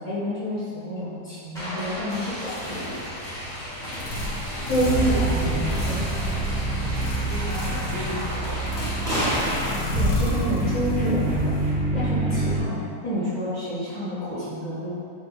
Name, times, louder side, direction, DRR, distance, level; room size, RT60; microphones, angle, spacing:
voice 1, 0.0-3.0 4.7-6.2 9.9-11.6 11.9-14.9, equal, 45° left, -13 dB, 1.4 m, -28 dB
sound 1, 1.5-9.8, equal, 5° left, 0.7 m, -32 dB
sound 2, 2.4-12.2, left 1 dB, 75° left, 1.1 m, -33 dB
sound 3, 4.8-12.6, right 2 dB, 40° right, 0.4 m, -27 dB
voice 2, 7.3-8.8 9.3-9.9, right 2 dB, 70° right, -2 dB, 0.7 m, -38 dB
4.1 x 3.5 x 2.3 m, 2.4 s
omnidirectional pair, 1.8 m